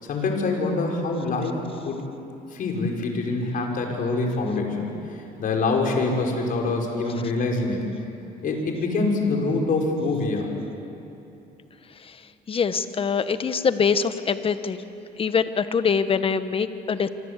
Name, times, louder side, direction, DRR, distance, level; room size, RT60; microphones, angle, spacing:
voice 1, 0.0-2.0 2.5-4.9 5.4-7.8 8.4-10.5, left 3 dB, 55° left, 1 dB, 5.4 m, -25 dB
voice 2, 12.5-14.8 15.2-17.1, left 6 dB, 35° left, 11 dB, 1.3 m, -23 dB
26.5 x 25.0 x 8.3 m, 3.0 s
cardioid pair, 110°, 17 cm